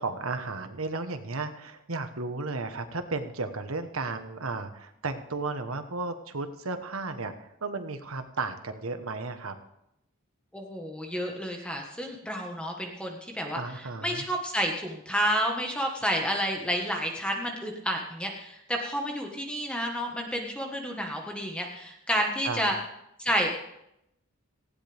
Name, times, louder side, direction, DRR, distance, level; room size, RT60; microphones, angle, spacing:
voice 1, 0.0-9.5 13.5-14.3 22.4-22.7, right 3 dB, 85° right, 8 dB, 1.3 m, -34 dB
voice 2, 10.5-22.8 23.2-23.5, equal, 5° left, 1 dB, 1.5 m, -30 dB
18.5 x 16.0 x 3.5 m, 0.83 s
head